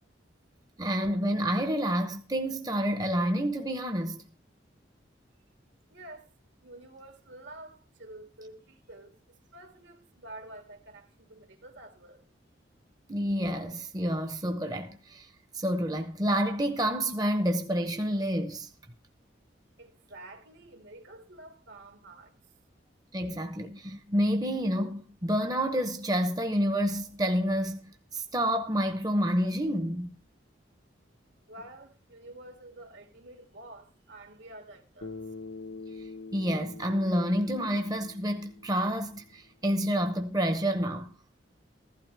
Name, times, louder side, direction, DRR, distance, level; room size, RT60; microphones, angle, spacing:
voice 1, 0.8-4.2 13.1-15.3 15.5-18.7 23.1-30.2 36.3-41.1, equal, 20° right, 0.8 m, -29 dB
voice 2, 5.9-6.3 6.6-12.2 19.8-22.4 31.5-35.2, right 1 dB, 80° right, 2.4 m, -49 dB
Bass guitar, 35.0-39.4, left 3 dB, 80° left, 1.0 m, -45 dB
15.0 x 12.0 x 3.4 m
head